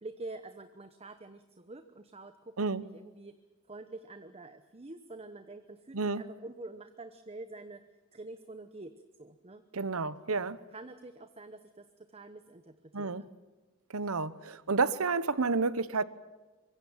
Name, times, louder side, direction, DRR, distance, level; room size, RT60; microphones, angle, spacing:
voice 1, 0.0-3.3 3.7-7.8 8.1-8.9 9.2-9.6 10.7-13.3, right 2 dB, 30° right, 9 dB, 1.0 m, -47 dB
voice 2, 9.7-10.6 12.9-13.2 13.9-16.0, right 4 dB, 90° right, 16 dB, 1.0 m, -30 dB
24.5 x 23.0 x 7.3 m, 1.2 s
head